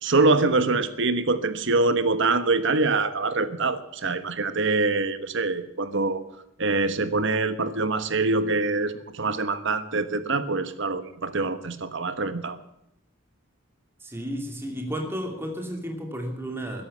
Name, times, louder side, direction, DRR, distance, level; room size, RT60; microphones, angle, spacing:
voice 1, 0.0-6.2 6.6-12.6, right 3 dB, 65° right, 12 dB, 1.2 m, -24 dB
voice 2, 14.0-16.8, equal, 10° right, 2 dB, 2.8 m, -32 dB
13.5 x 11.5 x 7.3 m, 0.81 s
head